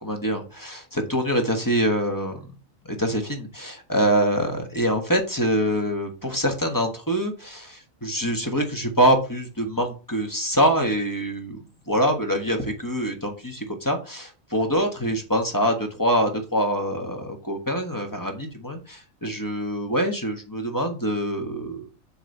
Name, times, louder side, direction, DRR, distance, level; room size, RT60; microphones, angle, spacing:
voice 1, 0.0-2.5 2.8-21.9, equal, 15° left, 3 dB, 1.2 m, -25 dB
7.7 x 3.1 x 5.3 m, 0.34 s
omnidirectional pair, 1.5 m